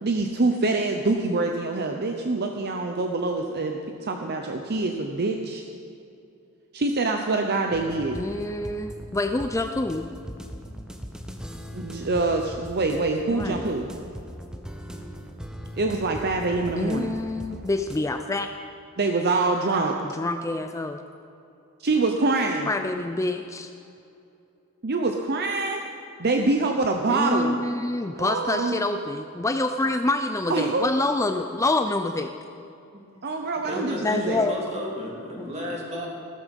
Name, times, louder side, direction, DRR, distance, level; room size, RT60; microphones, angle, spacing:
voice 1, 0.0-5.6 6.7-8.2 11.7-13.9 15.8-17.2 19.0-20.0 21.8-22.7 24.8-25.8 26.2-27.6 28.1-28.8 30.5-30.9 33.2-34.5, right 3 dB, 50° right, 3 dB, 0.8 m, -25 dB
sound 1, 7.7-18.0, equal, 5° right, 0.9 m, -40 dB
voice 2, 8.1-10.1 13.3-13.7 16.8-18.5 20.2-21.0 22.7-23.7 27.1-32.3 33.7-34.6 35.4-35.5, left 2 dB, 15° left, 7 dB, 0.4 m, -27 dB
voice 3, 33.6-36.1, left 1 dB, 30° right, -2 dB, 3.1 m, -33 dB
15.5 x 13.5 x 5.4 m, 2.7 s
head